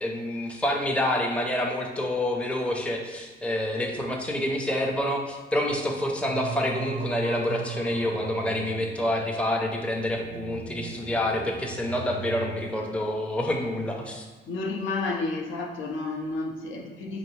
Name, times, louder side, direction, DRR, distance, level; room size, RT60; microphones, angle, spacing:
voice 1, 0.0-14.3, left 1 dB, 5° left, 0 dB, 0.5 m, -28 dB
Singing, 6.2-13.6, right 6 dB, 60° right, 0.4 m, -38 dB
voice 2, 14.5-17.2, left 3 dB, 75° left, 1 dB, 0.6 m, -31 dB
4.5 x 2.6 x 3.1 m, 1.2 s
cardioid pair, 90°, 20 cm